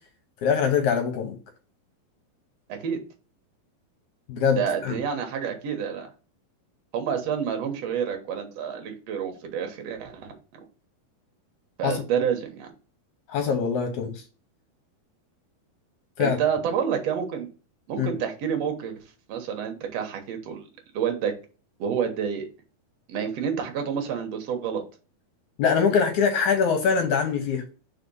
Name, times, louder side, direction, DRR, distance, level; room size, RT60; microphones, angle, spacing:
voice 1, 0.4-1.4 4.3-5.0 11.8-12.0 13.3-14.2 16.2-16.4 18.0-18.1 25.6-27.6, left 6 dB, 70° left, 1.9 m, -23 dB
voice 2, 2.7-3.0 4.6-6.1 6.9-10.3 11.8-12.7 16.2-17.5 17.9-19.0 19.3-20.6 20.9-21.3 21.8-22.5 23.1-24.8, right 7 dB, 65° right, 1.6 m, -28 dB
4.8 x 4.1 x 5.4 m
omnidirectional pair, 4.4 m